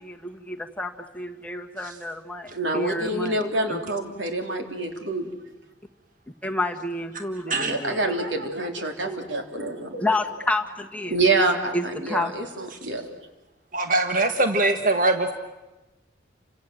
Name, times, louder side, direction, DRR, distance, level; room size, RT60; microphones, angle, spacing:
voice 1, 0.0-3.8 6.4-8.0 10.0-11.2 11.7-12.3, left 2 dB, 10° left, 3 dB, 1.6 m, -30 dB
voice 2, 2.5-5.3 7.4-10.1 11.1-13.1, right 2 dB, 85° right, 4 dB, 3.6 m, -27 dB
voice 3, 13.7-15.3, right 2 dB, 45° right, 6 dB, 1.6 m, -22 dB
30.0 x 25.5 x 7.7 m, 1.1 s
head